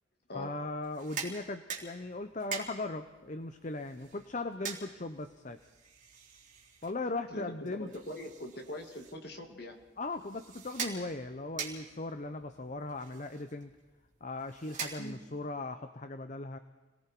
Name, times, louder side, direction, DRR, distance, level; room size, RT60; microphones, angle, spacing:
voice 1, 0.3-5.6 6.8-7.9 10.0-13.7 14.2-16.6, left 2 dB, 40° left, 9 dB, 0.8 m, -38 dB
sound 1, 0.8-15.5, right 6 dB, 40° right, 3.7 m, -45 dB
voice 2, 7.3-9.8 15.0-15.2, left 1 dB, 55° left, 3 dB, 2.6 m, -42 dB
29.5 x 19.5 x 4.6 m, 1.2 s
head